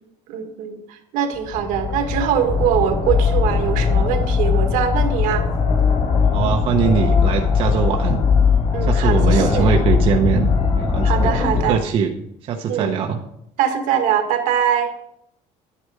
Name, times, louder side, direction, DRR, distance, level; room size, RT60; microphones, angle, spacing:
voice 1, 0.3-5.5 8.7-9.7 11.0-11.8 12.7-13.0 13.6-14.9, right 9 dB, 70° right, 5 dB, 1.8 m, -22 dB
sound 1, 1.3-11.7, left 5 dB, 50° left, 3.2 m, -19 dB
voice 2, 6.3-8.2 8.8-12.1 12.4-13.2, right 7 dB, 40° right, 2 dB, 0.9 m, -22 dB
11.0 x 9.7 x 4.9 m, 0.75 s
cardioid pair, 170°, 14 cm